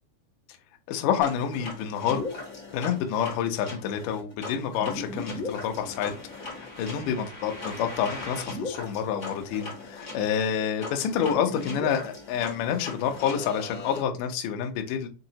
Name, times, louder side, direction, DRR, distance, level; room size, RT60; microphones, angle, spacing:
voice 1, 0.9-2.2 2.7-15.1, left 8 dB, 90° left, 4 dB, 1.8 m, -28 dB
sound 1, 1.2-14.0, left 2 dB, 55° left, 0.8 m, -38 dB
6.4 x 2.8 x 2.8 m, 0.32 s
omnidirectional pair, 4.9 m